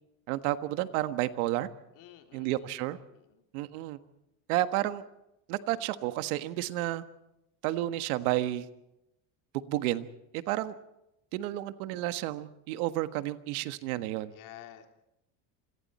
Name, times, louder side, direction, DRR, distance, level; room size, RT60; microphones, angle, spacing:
voice 1, 0.3-1.7 2.3-3.0 3.5-4.0 4.5-5.0 5.5-7.0 7.6-8.7 9.5-10.1 10.3-10.7 11.3-14.3, right 15 dB, 80° right, 11 dB, 1.6 m, -31 dB
voice 2, 1.9-3.4 14.3-14.9, left 12 dB, 45° left, 5 dB, 3.1 m, -51 dB
27.5 x 25.0 x 4.3 m, 0.88 s
cardioid pair, 180°, 43 cm